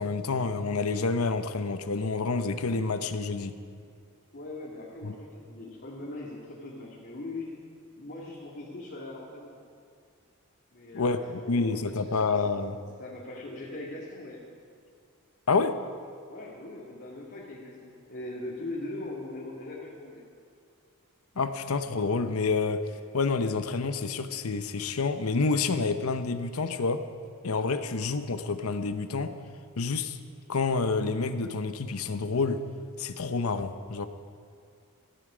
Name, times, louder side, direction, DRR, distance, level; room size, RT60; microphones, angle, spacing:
voice 1, 0.0-3.6 5.0-5.1 10.9-12.8 15.5-15.8 21.4-27.0 27.4-29.4 29.8-30.2 30.5-32.6 33.0-34.1, left 4 dB, 70° left, 10 dB, 0.8 m, -28 dB
voice 2, 4.3-7.5 7.9-9.6 10.7-12.2 13.0-14.4 16.3-20.2, left 2 dB, 50° left, -5 dB, 2.1 m, -40 dB
18.5 x 13.5 x 5.0 m, 2.2 s
head